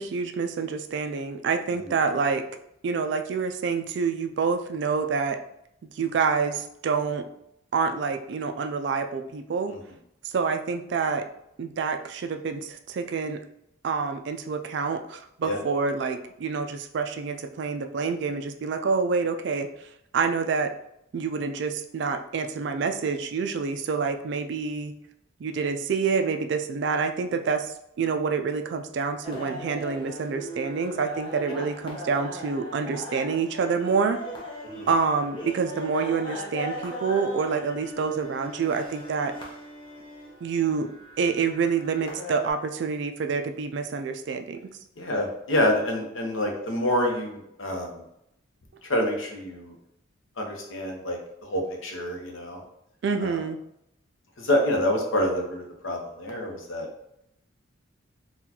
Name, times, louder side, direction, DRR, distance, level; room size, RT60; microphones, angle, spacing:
voice 1, 0.0-2.4 2.8-5.4 5.8-7.3 7.7-9.8 10.3-11.2 11.6-13.4 13.8-19.7 20.1-20.7 21.1-24.9 25.4-34.2 34.9-39.3 40.4-40.9 41.2-44.6 53.0-53.6, right 5 dB, 55° right, 7 dB, 0.3 m, -27 dB
sound 1, 29.2-42.5, equal, 25° left, 0.6 m, -39 dB
voice 2, 45.0-48.0 48.8-49.7 50.4-52.6 53.2-53.4 54.4-56.9, left 1 dB, 80° left, 1 dB, 0.8 m, -27 dB
4.0 x 2.3 x 2.8 m, 0.77 s
head